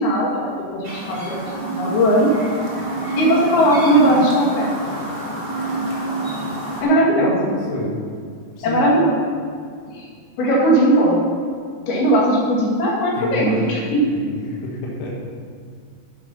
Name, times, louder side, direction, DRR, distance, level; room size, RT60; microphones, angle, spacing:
voice 1, 0.0-1.5 1.7-2.3 3.2-4.7 6.8-7.4 8.6-9.1 9.9-10.1 10.4-11.2 11.9-14.0, right 1 dB, 85° left, -4 dB, 4.1 m, -18 dB
Chirp tweet, 0.8-6.8, right 2 dB, 20° right, 1.0 m, -27 dB
voice 2, 7.2-8.0 8.6-8.9 13.1-15.1, left 2 dB, 65° left, -4 dB, 3.1 m, -28 dB
10.0 x 8.9 x 5.6 m, 2.1 s
omnidirectional pair, 4.3 m